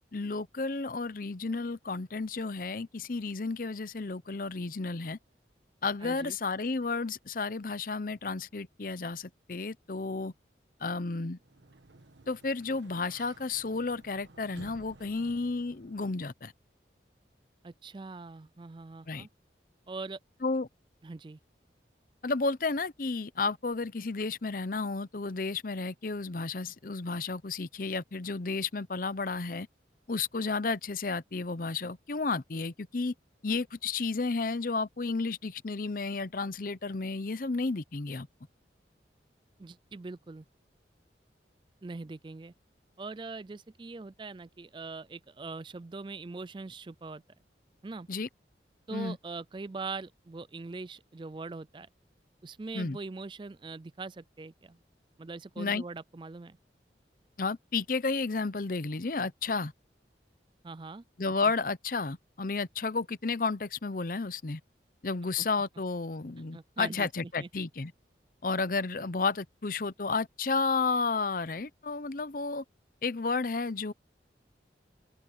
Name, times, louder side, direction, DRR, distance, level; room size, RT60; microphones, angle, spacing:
voice 1, 0.1-5.2 5.8-10.3 10.8-11.4 12.3-16.5 19.1-19.3 20.4-20.7 22.2-29.7 30.1-33.1 33.4-38.3 48.1-48.3 48.9-49.2 52.7-53.0 55.6-55.8 57.4-59.7 61.2-64.6 65.0-67.9 68.4-72.6 73.0-73.9, left 4 dB, 50° left, 0.7 m, -32 dB
voice 2, 6.0-6.4 17.6-19.3 19.9-20.2 21.0-21.4 39.6-40.5 41.8-42.5 43.0-47.2 47.8-48.1 48.9-51.9 52.4-54.8 55.2-56.6 60.6-61.0 65.4-65.5 66.5-67.5, right 3 dB, 25° right, 0.4 m, -42 dB
Sliding door, 11.3-16.2, right 2 dB, 85° right, 1.5 m, -55 dB
head